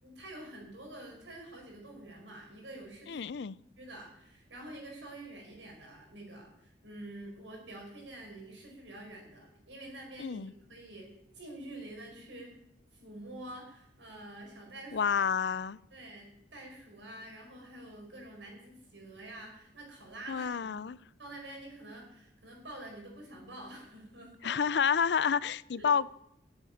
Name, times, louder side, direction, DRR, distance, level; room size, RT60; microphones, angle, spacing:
voice 1, 0.0-3.2 3.5-12.5 12.9-15.1 15.9-20.8 21.2-24.6 25.7-25.9, right 1 dB, 85° right, 5.4 m, -47 dB
voice 2, 3.1-3.6 10.2-10.5 14.9-15.8 20.3-21.0 24.4-26.1, left 7 dB, 65° left, 0.4 m, -29 dB
11.0 x 8.2 x 9.2 m
head